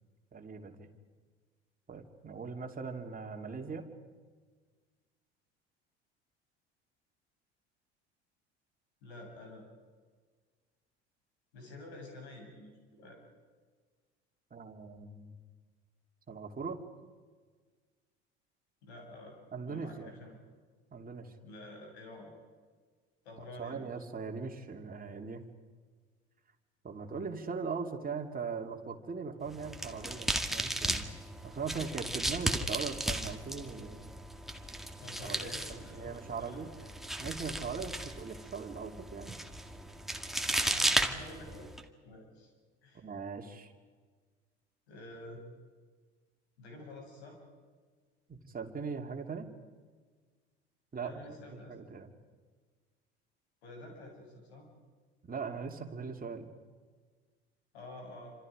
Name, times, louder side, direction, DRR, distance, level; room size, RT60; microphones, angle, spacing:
voice 1, 0.3-0.9 1.9-3.9 14.5-15.4 16.3-16.8 19.5-20.1 20.9-21.3 23.6-25.4 26.8-31.1 31.4-34.1 35.2-36.7 37.2-39.4 43.0-43.7 48.3-49.5 50.9-51.1 51.7-52.1 55.2-56.5, right 5 dB, 25° right, 3 dB, 2.8 m, -40 dB
voice 2, 9.0-9.7 11.5-13.2 18.8-20.5 21.4-22.3 23.2-23.9 30.0-30.1 35.0-36.9 40.4-42.5 42.8-43.1 44.9-45.4 46.6-47.4 51.0-52.1 53.6-54.7 57.7-58.3, left 1 dB, 75° left, 2 dB, 7.5 m, -49 dB
sound 1, 29.5-41.8, right 1 dB, ahead, 1.9 m, -35 dB
28.0 x 26.5 x 5.1 m, 1.5 s
figure-of-eight pair, 65°, 33 cm